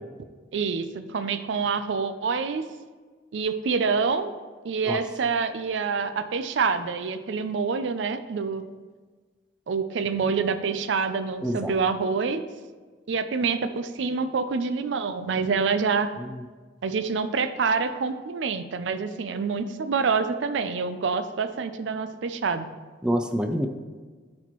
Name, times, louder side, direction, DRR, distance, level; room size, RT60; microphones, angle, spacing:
voice 1, 0.5-2.6 3.3-4.3 4.6-8.6 9.7-12.4 13.1-16.1 16.8-22.7, right 5 dB, 70° right, 11 dB, 0.4 m, -26 dB
voice 2, 11.4-11.7 16.2-16.4 23.0-23.7, equal, 5° right, 5 dB, 0.4 m, -27 dB
12.0 x 4.2 x 3.0 m, 1.4 s
head